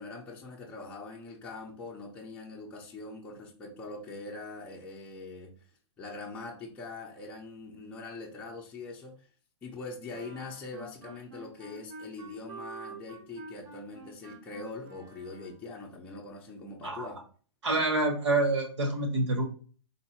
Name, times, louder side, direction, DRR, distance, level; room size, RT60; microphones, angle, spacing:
voice 1, 0.0-5.5 6.0-9.3 9.6-17.2, left 3 dB, 10° left, 0.5 m, -43 dB
sound 1, 10.1-15.8, right 3 dB, 35° right, 0.9 m, -48 dB
voice 2, 17.6-19.5, right 2 dB, 85° right, 2.0 m, -27 dB
3.9 x 2.6 x 4.2 m
hypercardioid pair, 160°, 14 cm